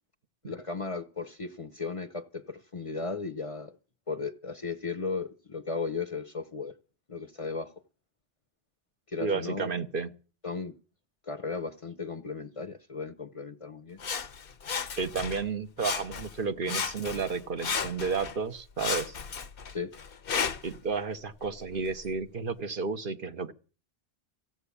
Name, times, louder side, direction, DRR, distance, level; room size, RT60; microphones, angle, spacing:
voice 1, 0.4-3.8 4.1-6.7 7.1-7.7 9.1-9.8 10.4-10.7 11.2-14.0 19.7-19.9, left 4 dB, 35° left, 0.8 m, -36 dB
voice 2, 9.2-10.1 15.0-19.1 20.6-23.5, right 5 dB, 60° right, 1.1 m, -32 dB
Sawing, 14.0-15.5 15.8-16.4 16.7-18.4 18.8-20.8 21.4-21.5, left 6 dB, 60° left, 1.0 m, -34 dB
15.5 x 7.7 x 8.4 m
omnidirectional pair, 1.1 m